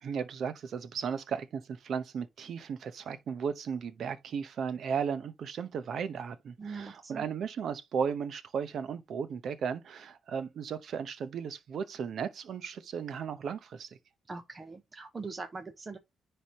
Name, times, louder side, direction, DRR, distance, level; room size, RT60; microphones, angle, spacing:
voice 1, 0.0-13.9, right 6 dB, 60° right, 0.9 m, -35 dB
voice 2, 6.6-7.2 14.3-16.0, right 4 dB, 30° right, 0.8 m, -42 dB
10.0 x 3.4 x 3.0 m
cardioid pair, 105°, 0 cm